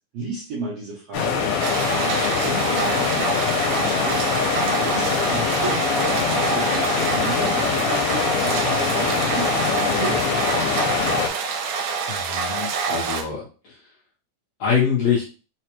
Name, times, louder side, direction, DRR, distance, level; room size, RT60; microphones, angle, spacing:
voice 1, 0.1-1.6 1.9-4.2 4.8-9.5 9.8-10.6, right 3 dB, 70° right, -5 dB, 1.4 m, -33 dB
sound 1, 1.1-11.3, left 6 dB, 85° left, 2.2 m, -23 dB
sound 2, 1.6-13.2, right 5 dB, 90° right, 2.2 m, -26 dB
voice 2, 12.1-13.4 14.6-15.2, left 7 dB, 65° left, -6 dB, 1.6 m, -23 dB
5.0 x 2.2 x 3.0 m, 0.37 s
omnidirectional pair, 3.7 m